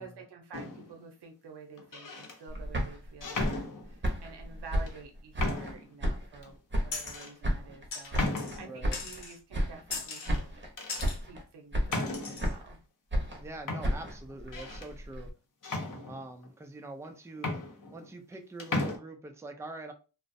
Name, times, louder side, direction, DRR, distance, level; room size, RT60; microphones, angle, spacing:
voice 1, 0.0-10.4 11.2-12.8, right 5 dB, 75° right, 4 dB, 0.8 m, -49 dB
sound 1, 0.5-1.0 1.8-2.4 3.2-4.2 4.9-5.0 5.4-5.9 6.4-6.5 7.1-7.3 8.2-8.8 9.9-10.4 10.8-11.1 11.9-12.5 13.3-13.4 13.7-14.9 15.6-16.5 17.0-17.1 17.4-18.3 18.6-19.0, left 2 dB, 50° left, 0.7 m, -36 dB
sound 2, 2.5-5.7 6.0-7.1 7.4-9.2 9.5-10.0 10.3-10.7 11.0-11.4 11.7-12.8 13.1-15.3, equal, 30° right, 0.7 m, -33 dB
sound 3, 6.9-7.3 7.9-8.6 8.9-9.4 9.9-10.3 10.9-11.2 11.9-12.5, left 4 dB, 85° left, 0.8 m, -39 dB
voice 2, 8.6-9.0 13.4-15.3 16.1-17.6 17.9-19.9, right 2 dB, 10° right, 5 dB, 0.3 m, -44 dB
2.4 x 2.1 x 2.5 m, 0.33 s
wide cardioid pair, 95°, 41 cm